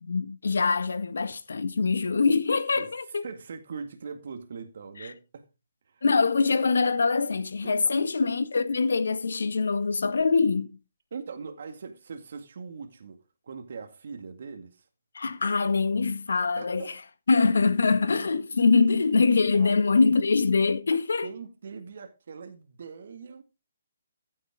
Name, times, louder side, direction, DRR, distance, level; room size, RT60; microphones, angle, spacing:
voice 1, 0.0-3.2 5.0-5.1 6.0-10.8 15.1-17.0 17.3-21.3, left 4 dB, 70° left, 1.9 m, -24 dB
voice 2, 3.2-5.5 5.9-6.0 7.6-7.8 11.1-13.2 13.4-14.9 16.6-16.9 19.5-19.8 21.2-23.4, right 5 dB, 60° right, 2.1 m, -41 dB
15.5 x 7.7 x 3.7 m
figure-of-eight pair, 140°, 0 cm